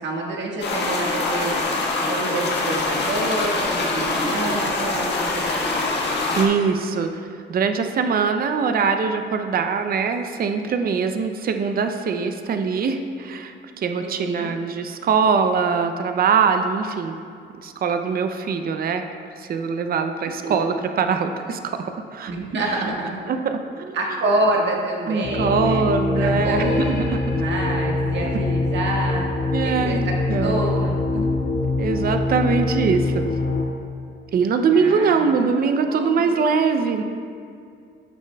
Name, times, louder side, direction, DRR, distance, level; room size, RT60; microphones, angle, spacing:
voice 1, 0.0-1.6 2.1-5.6 14.0-14.5 20.4-20.5 22.3-23.1 23.9-25.8 26.1-27.0 27.3-29.3 29.6-30.0 30.4-31.2 34.7-36.5, right 2 dB, 65° right, -1 dB, 1.6 m, -27 dB
sound 1, 0.6-6.5, left 3 dB, 60° left, 1.5 m, -24 dB
voice 2, 6.3-7.1 7.5-17.2 17.6-19.0 19.4-21.9 22.1-22.3 22.6-22.8 23.3-24.0 25.1-27.2 29.5-30.6 31.8-33.3 34.3-37.0, right 5 dB, 50° right, 7 dB, 0.6 m, -22 dB
sound 2, 25.2-33.6, left 3 dB, 75° left, 1.8 m, -24 dB
13.5 x 6.3 x 2.3 m, 2.4 s
cardioid pair, 90°, 20 cm